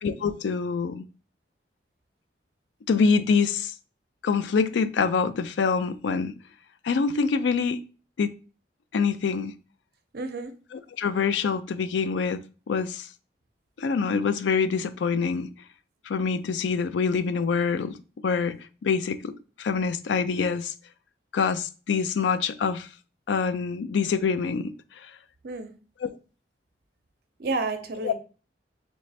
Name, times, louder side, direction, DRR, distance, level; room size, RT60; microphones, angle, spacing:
voice 1, 0.0-1.0 2.9-3.7 4.2-6.3 6.8-7.8 8.2-8.3 8.9-9.5 11.0-13.1 13.8-15.5 16.1-18.0 18.2-18.6 18.8-20.7 21.3-22.9 23.3-24.7 25.0-25.1 26.0-26.1 28.0-28.1, left 5 dB, 90° left, 0.4 m, -25 dB
voice 2, 10.1-10.5 25.4-25.7 27.4-28.1, right 3 dB, 60° right, 0.6 m, -30 dB
3.2 x 3.2 x 4.1 m
head